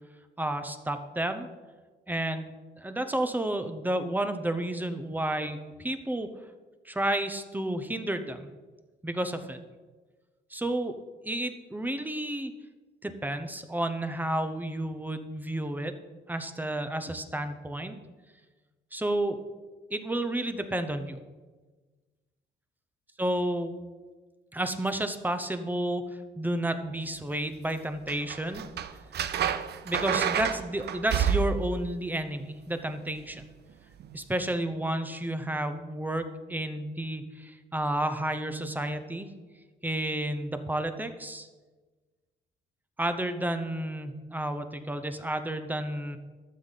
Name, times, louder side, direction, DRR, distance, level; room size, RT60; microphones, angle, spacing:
voice 1, 0.4-1.5 2.1-6.3 6.8-8.5 9.0-9.6 10.5-12.5 13.0-15.9 16.3-18.0 18.9-19.4 19.9-21.2 23.2-23.8 24.5-26.0 26.4-28.6 29.8-33.4 34.1-39.3 39.8-41.5 43.0-46.2, right 1 dB, 10° right, 9 dB, 0.9 m, -31 dB
sound 1, 28.1-31.8 34.0-34.2, right 8 dB, 55° right, 0.6 m, -29 dB
12.5 x 7.3 x 4.1 m, 1.3 s
cardioid pair, 90°, 20 cm